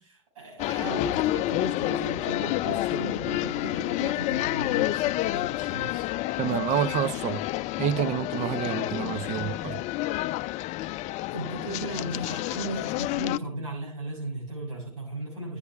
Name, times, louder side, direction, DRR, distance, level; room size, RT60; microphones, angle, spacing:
voice 1, 0.0-6.1 11.3-15.6, right 1 dB, 70° right, 7.7 m, -36 dB
sound 1, 0.6-13.4, left 17 dB, 40° left, 0.5 m, -29 dB
voice 2, 6.4-7.4 7.8-9.8, right 11 dB, 40° right, 0.7 m, -28 dB
13.0 x 9.9 x 3.5 m
hypercardioid pair, 90°, 18 cm